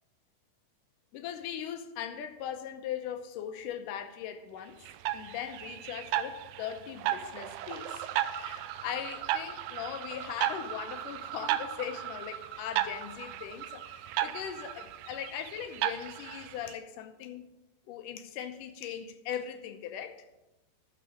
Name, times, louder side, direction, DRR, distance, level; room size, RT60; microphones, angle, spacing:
voice 1, 1.1-4.8 5.1-17.4 17.9-20.2, left 9 dB, 90° left, 2.4 m, -39 dB
sound 1, 4.9-16.7, right 12 dB, 80° right, 1.9 m, -35 dB
10.0 x 6.7 x 7.2 m
omnidirectional pair, 3.7 m